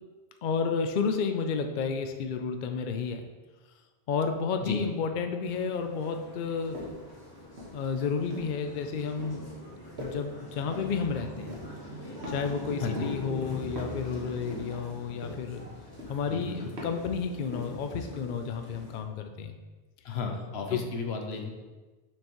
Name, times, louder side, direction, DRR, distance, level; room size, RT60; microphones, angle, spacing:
voice 1, 0.4-3.2 4.1-6.8 7.7-9.5 10.0-11.6 12.3-15.7 16.1-19.5 20.7-20.8, left 5 dB, 60° left, 6 dB, 0.6 m, -31 dB
sound 1, 5.4-19.0, left 1 dB, 20° left, 1.7 m, -43 dB
sound 2, 6.7-7.1 7.6-8.6 9.2-9.5 10.0-10.3 10.7-11.0 11.4-11.8 12.2-12.7 13.0-13.3 13.8-14.1 14.5-14.9 15.2-15.6 16.0-16.3 16.8-17.1 17.5-17.8, left 1 dB, 90° right, 1.7 m, -41 dB
voice 2, 16.3-16.7 20.0-21.5, left 4 dB, 80° left, 3 dB, 1.0 m, -34 dB
6.5 x 6.1 x 3.0 m, 1.2 s
omnidirectional pair, 1.0 m